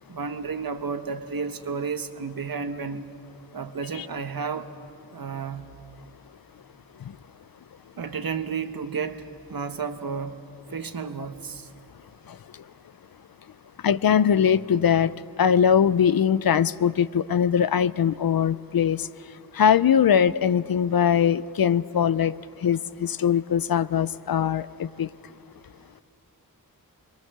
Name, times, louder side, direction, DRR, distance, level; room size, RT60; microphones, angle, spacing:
voice 1, 0.1-3.1 3.5-4.7 5.1-5.7 8.0-10.4 10.7-11.7, right 5 dB, 70° right, 9 dB, 1.2 m, -32 dB
voice 2, 13.8-19.1 19.5-22.4 22.6-25.1, left 8 dB, 70° left, 17 dB, 0.6 m, -21 dB
25.5 x 22.5 x 6.7 m, 2.6 s
wide cardioid pair, 100°, 37 cm